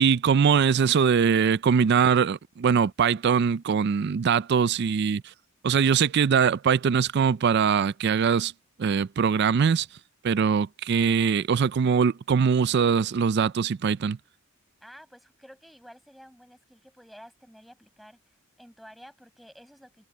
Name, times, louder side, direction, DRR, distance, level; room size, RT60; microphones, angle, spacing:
voice 1, 0.0-5.2 5.6-8.5 8.8-9.9 10.2-14.2, right 6 dB, 55° right, 0.4 m, -22 dB
voice 2, 14.8-20.0, equal, ahead, 5.9 m, -51 dB
head